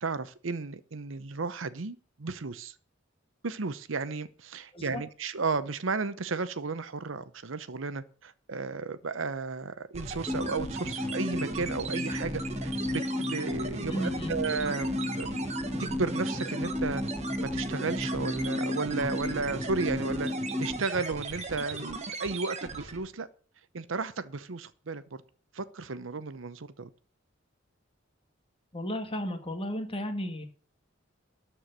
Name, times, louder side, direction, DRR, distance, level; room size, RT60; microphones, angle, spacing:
voice 1, 0.0-2.7 3.4-15.5 15.8-17.0 17.4-20.3 20.6-23.3 23.7-25.2 25.5-26.9, right 4 dB, 75° right, 14 dB, 0.8 m, -34 dB
sound 1, 9.9-23.1, right 3 dB, 35° right, 1.3 m, -38 dB
sound 2, 10.3-20.8, left 1 dB, ahead, 0.7 m, -34 dB
voice 2, 13.9-14.4 28.7-30.4, equal, 30° left, 6 dB, 1.8 m, -34 dB
12.5 x 4.7 x 7.8 m, 0.41 s
head